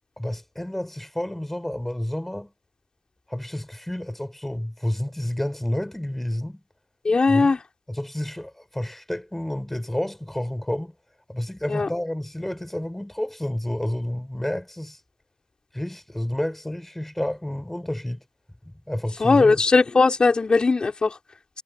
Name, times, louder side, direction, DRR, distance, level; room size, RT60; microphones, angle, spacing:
voice 1, 0.2-2.5 3.3-6.6 7.3-7.5 8.0-10.9 11.3-15.0 15.7-18.2 18.6-19.5, left 1 dB, 10° left, 5.6 m, -30 dB
voice 2, 7.0-7.6 11.7-11.9 19.2-21.2, left 4 dB, 45° left, 3.5 m, -19 dB
supercardioid pair, 45°, 2 cm